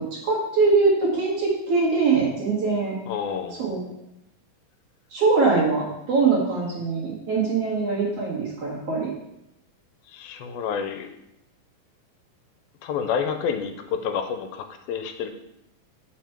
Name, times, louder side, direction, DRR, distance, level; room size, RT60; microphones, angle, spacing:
voice 1, 0.0-2.9 3.6-3.8 5.1-9.1, right 4 dB, 50° right, -4 dB, 2.1 m, -22 dB
voice 2, 3.1-3.6 10.1-11.1 12.8-15.3, left 7 dB, 85° left, 7 dB, 2.4 m, -29 dB
7.1 x 5.8 x 4.4 m, 0.84 s
omnidirectional pair, 4.2 m